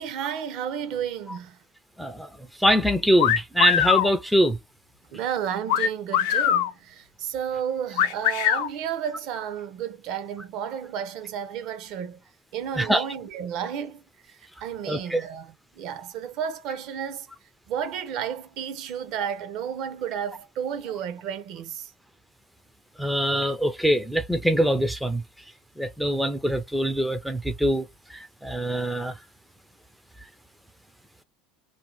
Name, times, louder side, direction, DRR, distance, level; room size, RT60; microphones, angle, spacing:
voice 1, 0.0-1.6 5.1-12.2 12.5-17.3 17.7-21.9 23.0-23.1, right 8 dB, 55° right, 0.5 m, -32 dB
voice 2, 2.0-2.3 2.6-4.6 12.8-13.0 14.9-15.2 23.0-25.2 25.8-29.1, equal, ahead, 0.3 m, -23 dB
sound 1, 3.2-4.1 5.7-6.7 8.0-8.7, left 10 dB, 75° left, 0.5 m, -22 dB
2.6 x 2.1 x 2.9 m
supercardioid pair, 140°, 0 cm